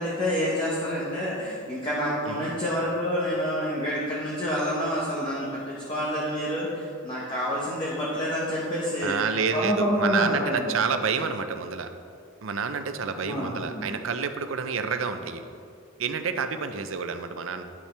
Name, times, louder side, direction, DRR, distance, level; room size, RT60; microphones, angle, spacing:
voice 1, 0.0-9.2 9.5-10.8 13.1-13.9, equal, 20° left, -8 dB, 1.1 m, -28 dB
voice 2, 9.0-11.9 12.4-15.4 16.0-17.6, right 5 dB, 75° right, 8 dB, 0.5 m, -29 dB
10.5 x 5.6 x 3.4 m, 2.4 s
head